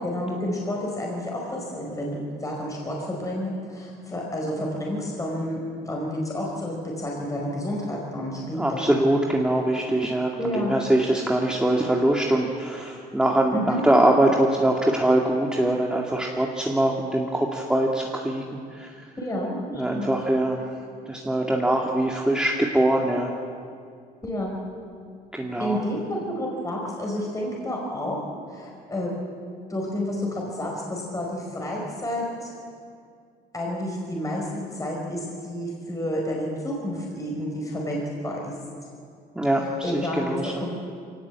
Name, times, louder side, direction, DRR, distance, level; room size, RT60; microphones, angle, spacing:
voice 1, 0.0-8.9 10.4-10.8 13.5-13.8 19.2-20.1 24.2-24.6 25.6-29.2 29.7-32.5 33.5-38.6 39.8-40.7, left 1 dB, 20° left, -2 dB, 5.0 m, -30 dB
voice 2, 8.5-18.9 19.7-20.8 21.1-23.3 25.3-25.8 39.4-40.5, right 1 dB, 5° right, -1 dB, 2.1 m, -23 dB
23.0 x 18.5 x 8.3 m, 2.3 s
cardioid pair, 110°, 17 cm